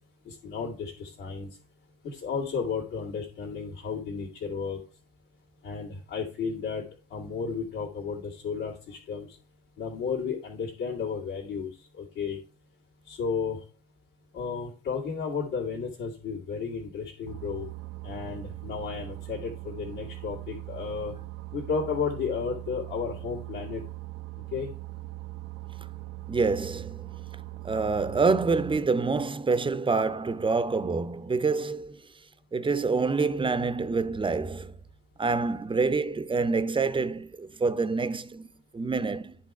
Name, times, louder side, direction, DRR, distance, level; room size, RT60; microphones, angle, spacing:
voice 1, 0.3-1.5 2.0-4.8 5.6-6.8 7.1-9.4 9.8-11.7 12.0-12.4 13.1-13.6 14.3-17.7 18.0-21.1 21.5-23.8 24.5-24.7, left 5 dB, 70° left, 2.1 m, -33 dB
Boat Water vehicle, 17.3-28.8, right 18 dB, 80° right, 0.5 m, -40 dB
voice 2, 26.3-27.1 27.6-32.0 32.5-34.8 35.2-39.4, right 4 dB, 15° right, 0.6 m, -27 dB
10.5 x 3.7 x 4.7 m
hypercardioid pair, 60°, 32 cm